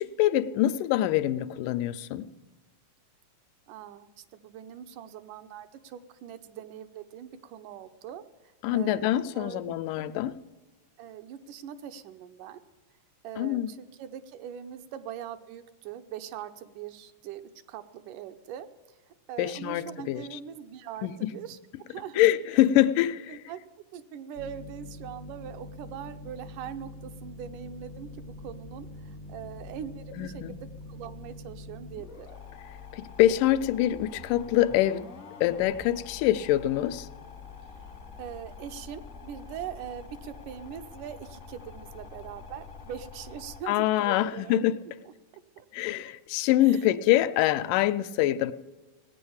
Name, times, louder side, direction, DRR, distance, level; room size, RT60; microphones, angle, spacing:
voice 1, 0.0-2.3 8.6-10.3 13.4-13.7 19.4-20.2 21.0-21.3 22.2-23.4 30.2-30.6 32.9-35.1 35.4-37.1 43.7-44.8 45.7-48.5, left 13 dB, 85° left, 2.2 m, -25 dB
voice 2, 3.7-8.2 8.7-9.8 11.0-12.6 13.2-17.4 17.7-18.7 19.3-21.6 21.9-22.2 23.3-23.6 23.9-32.3 37.7-37.8 38.2-44.6 45.1-45.2 45.6-45.7 46.6-46.8, right 9 dB, 80° right, 2.3 m, -42 dB
sound 1, 24.3-43.6, left 3 dB, 55° left, 0.8 m, -45 dB
17.5 x 9.3 x 7.1 m
omnidirectional pair, 3.7 m